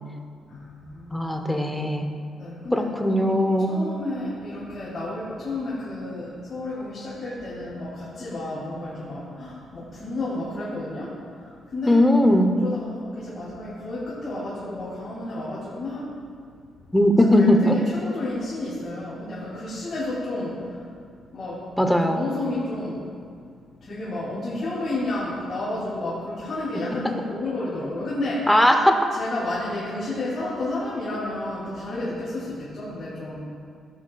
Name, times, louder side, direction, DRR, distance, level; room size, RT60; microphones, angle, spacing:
voice 1, 0.5-1.3 2.4-2.8 3.1-3.2 3.7-12.0 12.6-16.1 17.4-20.7 21.3-21.6 22.1-23.0 23.8-28.5 29.1-33.4, left 2 dB, 35° left, -9 dB, 2.4 m, -31 dB
voice 2, 1.1-2.1 2.7-3.8 11.9-12.5 16.9-17.8 21.8-22.3 27.0-27.1 28.5-29.0, left 1 dB, 5° left, 4 dB, 0.6 m, -19 dB
16.5 x 7.4 x 2.3 m, 2.1 s
cardioid pair, 140°, 0 cm